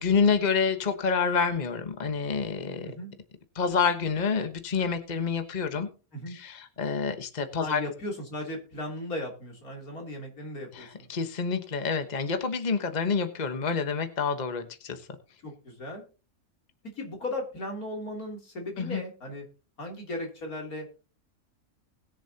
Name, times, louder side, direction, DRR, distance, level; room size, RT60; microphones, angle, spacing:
voice 1, 0.0-2.9 3.5-5.9 6.3-7.8 10.7-15.0 18.8-19.0, left 5 dB, 30° left, 7 dB, 1.3 m, -28 dB
voice 2, 7.6-11.1 15.4-16.0 16.8-19.4 19.8-20.9, left 1 dB, 90° left, 0 dB, 3.8 m, -36 dB
20.5 x 7.2 x 2.9 m, 0.34 s
omnidirectional pair, 1.5 m